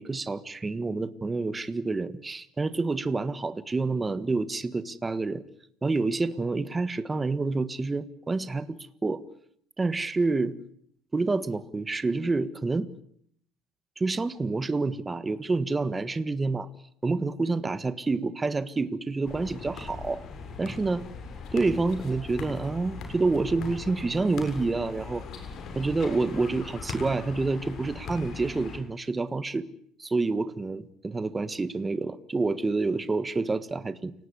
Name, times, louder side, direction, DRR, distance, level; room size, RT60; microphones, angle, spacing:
voice 1, 0.0-5.4 5.8-9.2 9.8-10.5 11.1-12.9 14.0-16.7 17.0-20.2 20.6-21.1 21.5-25.2 25.7-29.7 30.0-34.1, right 3 dB, 15° right, 14 dB, 1.5 m, -28 dB
sound 1, 19.2-28.8, left 4 dB, 55° left, 7.3 m, -40 dB
29.0 x 18.5 x 9.8 m, 0.67 s
cardioid pair, 130°, 0 cm